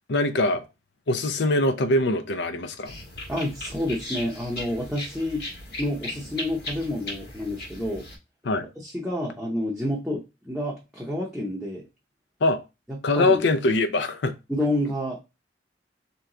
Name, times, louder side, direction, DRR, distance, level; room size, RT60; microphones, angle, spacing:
voice 1, 0.1-0.6 1.1-2.9 8.4-8.7 12.4-12.6 13.0-14.3, left 2 dB, 75° left, 0.6 m, -23 dB
sound 1, 2.8-8.1, left 1 dB, 55° left, 1.6 m, -37 dB
voice 2, 3.3-5.4 5.8-8.1 8.8-11.8 13.1-13.4 14.5-15.2, left 1 dB, 5° right, 0.6 m, -29 dB
3.4 x 3.0 x 3.7 m
head